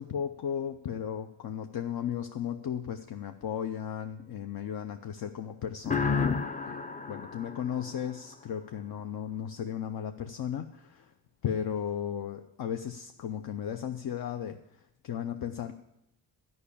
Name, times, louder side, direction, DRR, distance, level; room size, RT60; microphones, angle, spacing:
voice 1, 0.0-6.8 7.1-11.0 11.4-14.6 15.0-15.7, left 8 dB, 60° left, 6 dB, 0.6 m, -35 dB
sound 1, 5.8-8.5, left 5 dB, 20° left, 0.5 m, -32 dB
11.0 x 5.5 x 8.4 m, 0.87 s
wide cardioid pair, 110°, 42 cm